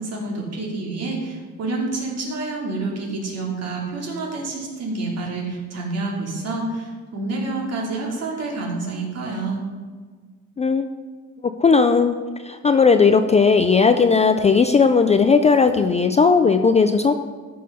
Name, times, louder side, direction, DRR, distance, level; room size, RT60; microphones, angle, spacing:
voice 1, 0.0-9.6, right 3 dB, 50° right, -1 dB, 2.7 m, -28 dB
voice 2, 11.6-12.2 12.4-17.1, left 5 dB, 20° left, 8 dB, 0.4 m, -16 dB
14.0 x 5.6 x 5.5 m, 1.5 s
cardioid pair, 150°, 31 cm